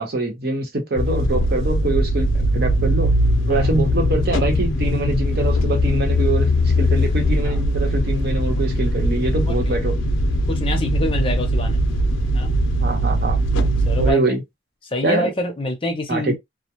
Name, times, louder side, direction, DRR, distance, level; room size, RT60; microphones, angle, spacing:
voice 1, 0.0-3.1 3.5-6.5 6.8-9.9 12.8-13.4 14.0-14.4 15.0-15.3 16.1-16.4, right 2 dB, 50° right, 0.9 m, -24 dB
sound 1, 1.0-14.1, equal, 80° left, 0.5 m, -20 dB
voice 2, 10.5-11.8 12.3-12.5 13.9-14.3 14.9-16.4, left 2 dB, 30° left, 0.7 m, -25 dB
2.3 x 2.1 x 2.9 m
head